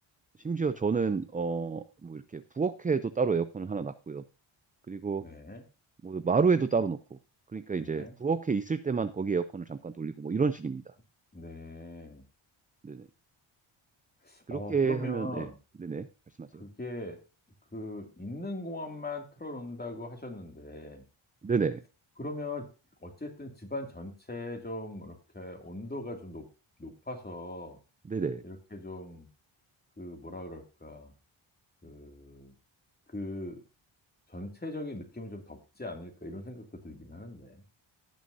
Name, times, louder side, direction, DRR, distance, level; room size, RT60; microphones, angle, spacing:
voice 1, 0.4-4.2 4.9-5.3 6.0-7.2 7.5-10.8 12.8-13.1 14.5-15.5 15.8-16.1 16.4-16.6 21.4-21.8 28.1-28.4, right 5 dB, 20° right, 12 dB, 0.4 m, -29 dB
voice 2, 5.2-5.6 7.8-8.1 11.3-12.2 14.2-15.6 16.6-17.2 17.7-21.0 22.2-22.7 23.0-26.5 26.8-27.8 28.4-29.3 30.0-31.1 31.8-32.5 33.1-33.6 34.3-37.6, left 2 dB, 20° left, 3 dB, 2.5 m, -40 dB
18.0 x 6.3 x 2.7 m, 0.32 s
cardioid pair, 95°, 50 cm